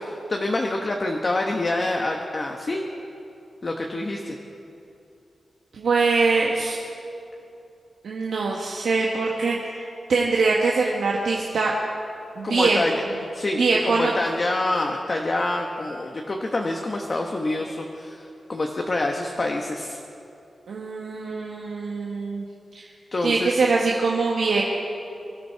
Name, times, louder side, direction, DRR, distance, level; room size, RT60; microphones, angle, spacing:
voice 1, 0.0-2.8 3.6-4.3 12.4-12.9 13.3-20.0 23.1-23.5, left 2 dB, 35° left, 1 dB, 1.0 m, -26 dB
voice 2, 5.7-6.8 8.0-11.8 12.4-12.8 13.5-14.1 20.7-22.5 22.7-22.8 23.2-24.6, right 4 dB, 90° right, -2 dB, 1.4 m, -23 dB
24.0 x 13.5 x 4.5 m, 2.7 s
wide cardioid pair, 165°, 0 cm